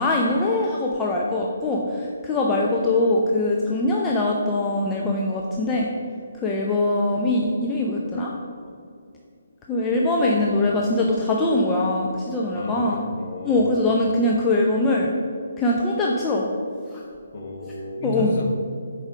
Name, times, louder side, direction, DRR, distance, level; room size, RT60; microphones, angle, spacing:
voice 1, 0.0-5.9 6.4-8.3 9.7-13.0 13.4-15.1 15.6-16.5 16.9-17.0 18.0-18.3, left 2 dB, 15° left, -3 dB, 0.6 m, -22 dB
voice 2, 12.5-13.9 17.3-18.4, left 2 dB, 45° left, -1 dB, 1.6 m, -33 dB
7.3 x 4.9 x 5.0 m, 2.3 s
figure-of-eight pair, 140°, 0 cm